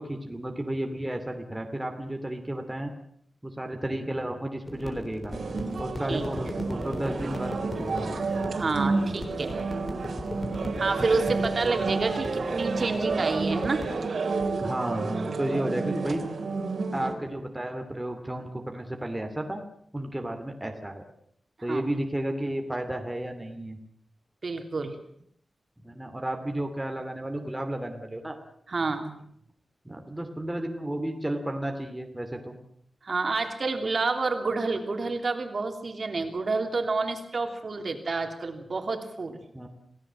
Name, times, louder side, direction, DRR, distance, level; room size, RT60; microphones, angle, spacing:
voice 1, 0.0-2.9 3.4-5.4 5.8-8.1 14.6-16.3 16.9-19.6 19.9-21.1 21.6-23.8 25.8-28.3 29.8-32.6 39.5-39.7, right 1 dB, 10° right, 4 dB, 2.7 m, -32 dB
sound 1, 4.7-13.9, left 1 dB, 35° left, 3.9 m, -38 dB
sound 2, 5.3-17.1, right 4 dB, 80° right, 3.6 m, -30 dB
voice 2, 8.5-9.6 10.8-13.8 21.7-21.9 24.4-25.0 28.7-29.2 33.0-39.4, right 3 dB, 50° right, 5 dB, 3.3 m, -29 dB
28.5 x 17.5 x 7.5 m, 0.66 s
wide cardioid pair, 140°, 0 cm